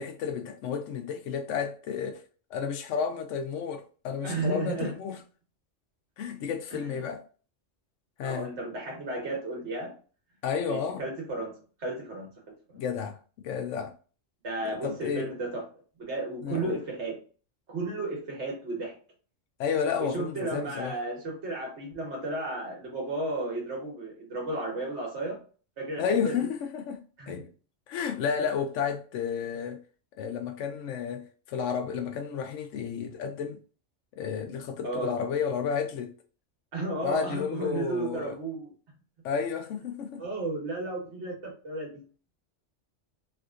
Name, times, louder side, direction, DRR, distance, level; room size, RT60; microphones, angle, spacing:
voice 1, 0.0-2.2 2.5-5.2 6.2-7.2 8.2-8.5 10.4-11.0 12.7-13.9 14.8-15.3 16.4-16.8 19.6-20.9 26.0-27.4 27.9-29.8 30.2-33.6 34.1-36.1 37.0-38.3 39.2-40.2, left 7 dB, 90° left, 0.9 m, -31 dB
voice 2, 4.2-4.9 6.7-7.0 8.2-9.9 10.7-12.3 12.7-12.8 14.4-15.7 16.0-17.2 17.7-19.0 20.0-25.4 25.8-26.5 27.2-27.5 34.8-35.2 36.7-38.7 40.2-42.0, right 2 dB, 70° right, 1.5 m, -33 dB
3.5 x 2.5 x 2.4 m
omnidirectional pair, 1.2 m